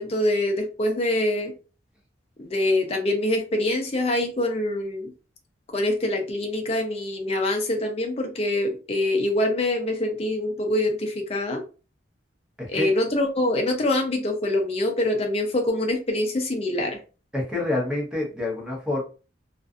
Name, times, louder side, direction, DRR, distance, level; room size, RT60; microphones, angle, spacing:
voice 1, 0.0-1.5 2.4-5.1 5.7-11.6 12.7-17.0, left 1 dB, 30° left, 3 dB, 0.5 m, -25 dB
voice 2, 17.3-19.0, left 2 dB, 5° right, -2 dB, 0.8 m, -27 dB
2.5 x 2.4 x 2.3 m, 0.34 s
head